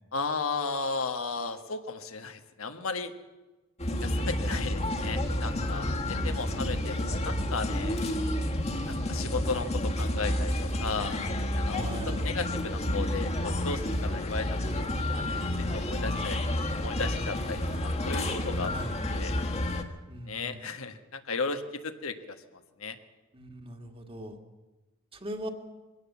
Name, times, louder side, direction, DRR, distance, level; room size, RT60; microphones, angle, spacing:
voice 1, 0.1-3.1 4.0-8.0 8.9-11.2 11.5-15.4 15.7-16.4 16.7-18.7 19.1-19.4 20.3-22.4 22.8-23.0, left 4 dB, 80° left, 7 dB, 1.5 m, -35 dB
sound 1, 3.8-19.8, left 1 dB, 30° left, 1.6 m, -30 dB
voice 2, 5.6-6.8 11.7-12.2 18.7-19.0 20.1-20.6 23.3-24.4 25.1-25.5, right 1 dB, 25° right, 5 dB, 2.0 m, -40 dB
22.0 x 17.5 x 7.2 m, 1.2 s
head